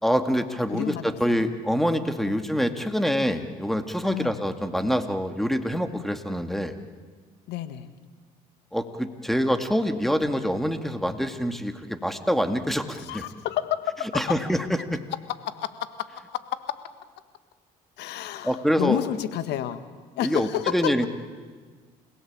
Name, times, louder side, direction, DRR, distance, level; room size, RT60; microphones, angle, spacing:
voice 1, 0.0-6.8 8.7-13.2 14.1-15.0 18.4-19.0 20.2-21.1, equal, ahead, 8 dB, 2.2 m, -25 dB
voice 2, 4.0-4.4 7.5-7.9 12.9-14.2 15.4-15.9 16.1-16.4 16.7-16.8 18.0-19.8 20.2-20.9, left 12 dB, 70° left, 11 dB, 1.7 m, -30 dB
29.0 x 17.0 x 8.9 m, 1.5 s
supercardioid pair, 70°, 18 cm